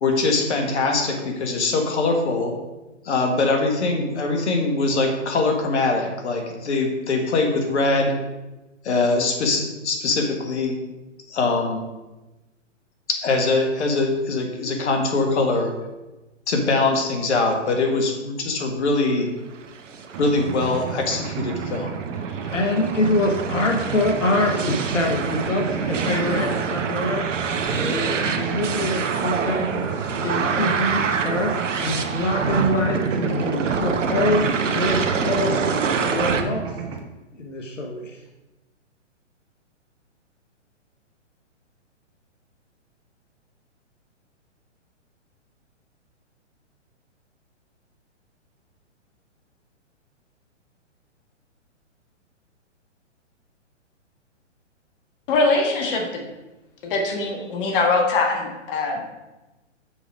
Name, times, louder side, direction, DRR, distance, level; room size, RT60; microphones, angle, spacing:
voice 1, 0.0-2.6 3.0-8.2 8.8-10.9 11.3-11.8 13.2-15.7 16.5-19.3 20.2-22.0, left 3 dB, 65° left, 3 dB, 1.6 m, -22 dB
sound 1, 19.6-36.4, right 5 dB, 80° right, 0.8 m, -26 dB
Mechanisms, 20.1-37.0, right 6 dB, 25° right, 0.5 m, -32 dB
voice 2, 22.5-27.3 27.7-29.9 30.1-31.6 31.8-34.5 34.7-35.7 36.1-36.7 37.3-38.2, left 1 dB, 90° left, 1 dB, 1.1 m, -25 dB
voice 3, 55.3-56.2 56.8-59.1, left 3 dB, 45° left, 1 dB, 1.5 m, -22 dB
6.1 x 4.8 x 4.9 m, 1.1 s
hypercardioid pair, 130°, 37 cm